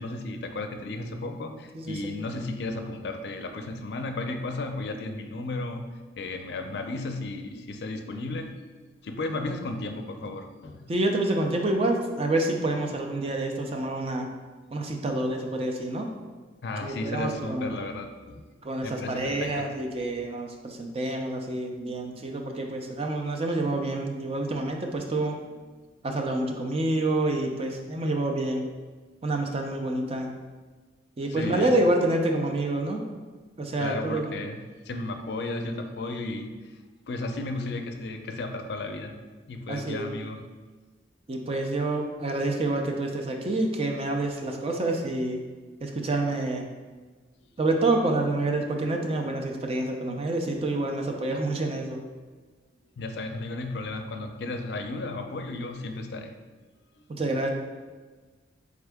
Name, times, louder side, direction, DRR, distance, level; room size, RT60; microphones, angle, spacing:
voice 1, 0.0-5.9 6.2-8.5 9.0-10.8 16.6-18.4 18.8-19.7 31.3-31.8 33.8-34.6 34.9-36.6 37.1-39.2 39.5-40.5 53.0-56.3, left 2 dB, 65° left, 6 dB, 0.4 m, -34 dB
voice 2, 1.7-2.1 10.9-14.3 14.7-16.1 16.8-17.8 18.6-25.4 26.0-28.6 29.2-30.3 31.2-33.0 33.6-34.3 39.7-40.1 41.3-45.4 45.8-46.7 47.6-52.0 57.1-57.5, right 2 dB, 35° right, 2 dB, 0.4 m, -27 dB
3.7 x 3.5 x 3.4 m, 1.3 s
head